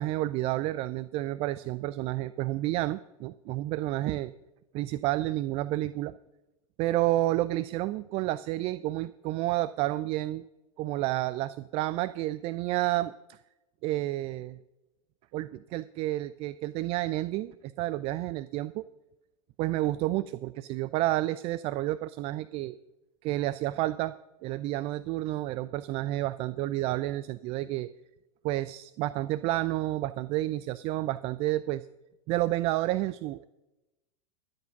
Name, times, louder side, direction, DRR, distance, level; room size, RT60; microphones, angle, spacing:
voice 1, 0.0-4.3 4.7-6.1 6.8-10.4 10.8-13.4 13.8-14.6 15.3-18.8 19.6-22.8 23.2-24.1 24.4-27.9 28.4-31.9 32.3-33.4, right 16 dB, 35° right, 16 dB, 0.4 m, -30 dB
13.0 x 8.0 x 5.8 m, 0.99 s
figure-of-eight pair, 95°, 17 cm